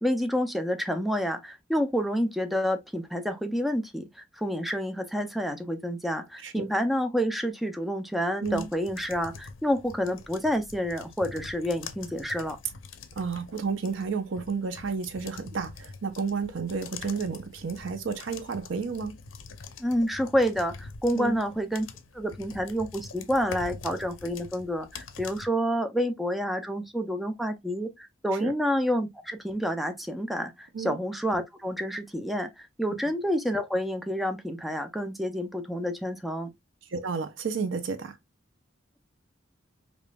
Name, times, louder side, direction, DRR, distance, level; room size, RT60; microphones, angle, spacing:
voice 1, 0.0-12.6 19.8-21.9 22.1-36.5, equal, ahead, 0.5 m, -29 dB
sound 1, 8.4-25.5, left 5 dB, 80° left, 0.6 m, -45 dB
voice 2, 13.2-19.2 21.1-21.4 28.4-28.5 30.7-31.0 36.9-38.2, right 5 dB, 75° right, 0.6 m, -31 dB
5.1 x 2.5 x 2.2 m
head